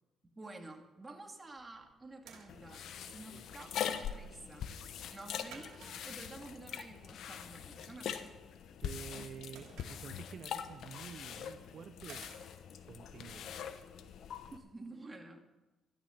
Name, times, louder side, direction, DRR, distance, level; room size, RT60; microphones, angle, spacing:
voice 1, 0.2-2.8 3.1-4.7 5.1-8.3 14.5-15.4, right 2 dB, 20° right, 3 dB, 2.1 m, -50 dB
sound 1, 1.4-14.5, right 6 dB, 85° right, 2.9 m, -61 dB
sound 2, 2.5-14.6, left 8 dB, 75° left, 1.0 m, -43 dB
voice 2, 8.8-12.3 12.9-13.7, right 7 dB, 55° right, 11 dB, 0.5 m, -49 dB
13.0 x 12.0 x 5.8 m, 1.1 s
cardioid pair, 90°, 0 cm